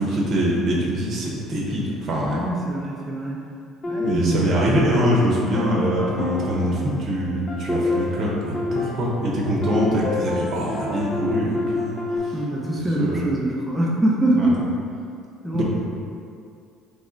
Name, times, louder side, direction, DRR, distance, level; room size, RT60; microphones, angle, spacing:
voice 1, 0.0-2.4 4.0-12.4 13.0-13.2 14.4-14.5 15.5-15.6, equal, 55° right, -4 dB, 0.9 m, -23 dB
voice 2, 2.3-3.4 3.9-4.5 12.3-14.6 15.4-15.6, right 1 dB, 10° right, -4 dB, 0.6 m, -23 dB
sound 1, 3.8-5.1 5.5-12.2, left 3 dB, 35° left, 0.7 m, -29 dB
3.2 x 2.3 x 4.2 m, 2.4 s
hypercardioid pair, 60°, 0 cm